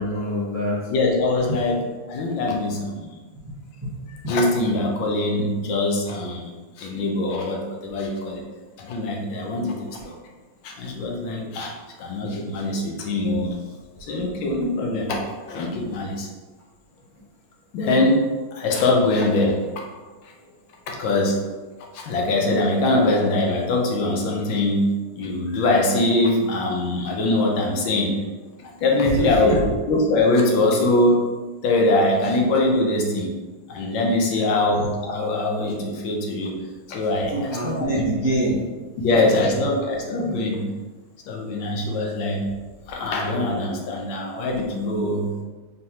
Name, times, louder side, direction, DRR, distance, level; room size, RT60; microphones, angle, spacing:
voice 1, 0.0-0.8 3.4-3.5 3.8-3.9 29.2-29.6 34.3-34.5 37.3-38.6 39.1-39.3, right 1 dB, 25° right, -8 dB, 0.3 m, -25 dB
voice 2, 0.9-1.8 2.1-3.1 4.1-6.5 6.8-8.5 8.8-10.2 10.6-11.7 12.0-13.6 14.0-15.2 15.5-16.3 17.7-18.3 18.5-19.7 20.2-20.3 20.9-21.4 21.9-24.9 25.2-28.2 28.6-31.2 31.6-33.3 33.7-36.5 36.9-38.0 39.0-40.6 41.3-42.4 42.9-45.3, left 2 dB, 75° left, 0 dB, 1.5 m, -22 dB
4.0 x 3.8 x 2.8 m, 1.3 s
omnidirectional pair, 2.1 m